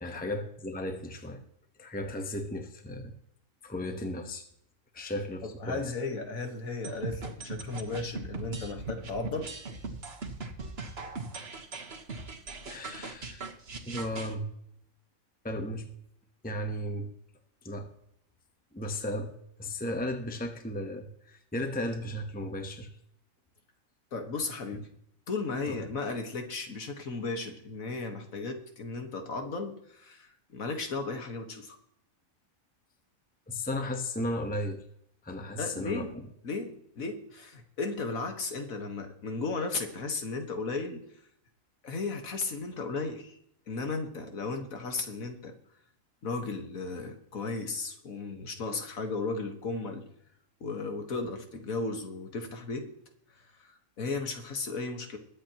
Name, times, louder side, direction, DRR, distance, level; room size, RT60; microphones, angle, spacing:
voice 1, 0.0-1.4 1.8-3.1 3.6-4.5 4.9-5.8 12.7-13.5 13.9-14.5 15.4-15.9 16.4-17.1 17.6-17.9 18.7-19.3 19.6-22.9 25.7-25.8 33.5-34.8 35.2-36.1, left 1 dB, 5° left, 5 dB, 1.1 m, -35 dB
voice 2, 5.6-9.5 24.1-24.9 25.3-31.8 35.6-36.1 36.4-41.0 41.8-43.3 43.7-45.5 46.2-50.1 50.6-52.9 53.6-55.2, left 3 dB, 75° left, 5 dB, 2.0 m, -35 dB
sound 1, 6.8-14.3, right 3 dB, 50° right, 1.6 m, -40 dB
22.0 x 8.5 x 3.0 m, 0.72 s
omnidirectional pair, 1.4 m